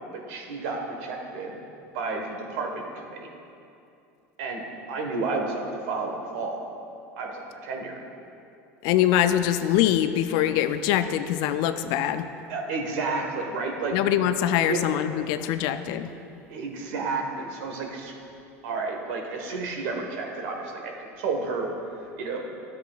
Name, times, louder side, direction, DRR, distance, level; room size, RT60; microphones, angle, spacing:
voice 1, 0.1-1.6 1.9-3.3 4.4-4.6 4.9-6.6 7.2-8.0 12.5-13.9 14.7-14.8 16.5-18.1 18.6-21.7 22.2-22.4, right 3 dB, 70° right, 1 dB, 1.4 m, -31 dB
voice 2, 8.8-12.3 13.9-16.1, left 11 dB, 60° left, 11 dB, 0.4 m, -23 dB
13.0 x 8.2 x 2.5 m, 2.7 s
hypercardioid pair, 80°, 8 cm